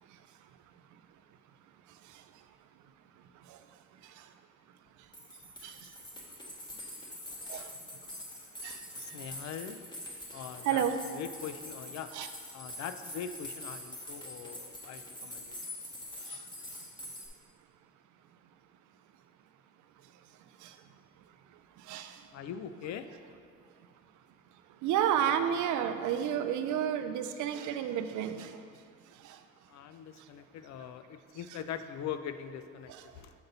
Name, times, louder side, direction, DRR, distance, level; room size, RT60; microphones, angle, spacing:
sound 1, 4.9-5.0 5.1-17.3, left 1 dB, 15° left, 1.0 m, -45 dB
voice 1, 9.0-9.8 10.3-10.8 11.1-12.1 12.5-15.6 22.3-23.1 29.7-33.3, left 8 dB, 65° left, 10 dB, 0.4 m, -42 dB
voice 2, 10.6-11.0 12.1-12.3 20.6-20.7 21.9-22.2 24.8-28.5 29.2-29.4, right 9 dB, 80° right, 9 dB, 0.5 m, -30 dB
6.9 x 4.1 x 3.9 m, 2.3 s
cardioid pair, 90°, 30 cm